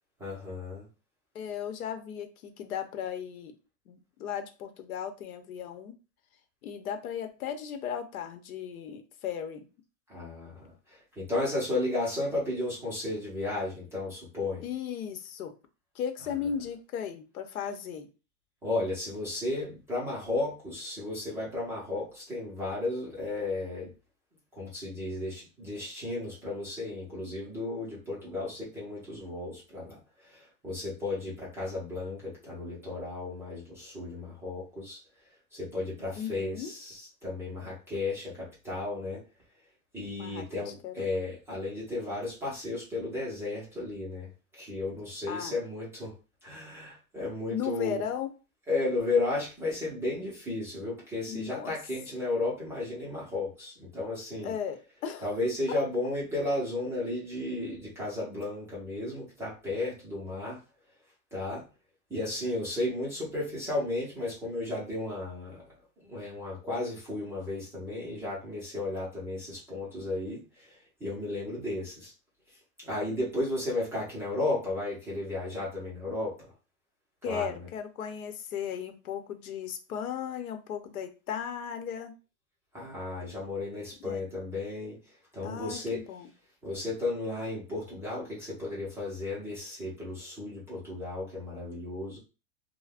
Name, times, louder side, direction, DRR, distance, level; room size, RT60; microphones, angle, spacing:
voice 1, 0.2-0.9 10.1-14.6 18.6-23.9 24.5-35.0 35.5-39.2 39.9-46.1 46.4-48.0 48.7-54.5 55.2-60.6 61.3-61.7 62.1-65.7 66.0-72.1 72.8-76.4 77.2-77.7 82.7-85.0 85.3-86.0 86.6-92.2, left 2 dB, 5° right, -7 dB, 0.4 m, -34 dB
voice 2, 1.3-3.5 3.9-5.9 6.6-9.7 14.6-15.5 15.9-18.1 36.2-36.7 40.2-40.9 45.3-45.6 47.5-48.3 51.3-51.7 54.4-55.3 77.2-82.1 84.0-84.2 85.4-86.3, left 8 dB, 80° left, 6 dB, 0.8 m, -36 dB
2.4 x 2.1 x 3.4 m, 0.33 s
supercardioid pair, 150°, 43 cm